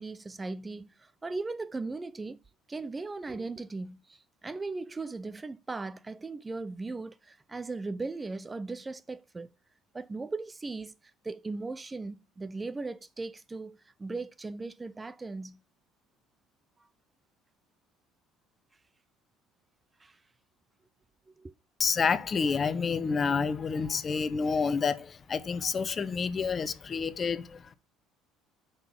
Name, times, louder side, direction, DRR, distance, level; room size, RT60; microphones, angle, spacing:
voice 1, 0.0-2.4 2.7-9.5 9.9-10.9 11.2-15.6 20.0-20.2 21.4-21.5, right 3 dB, 20° right, 0.5 m, -38 dB
voice 2, 21.8-27.8, left 5 dB, 40° left, 0.8 m, -29 dB
5.8 x 5.5 x 6.9 m
hypercardioid pair, 70°, 0 cm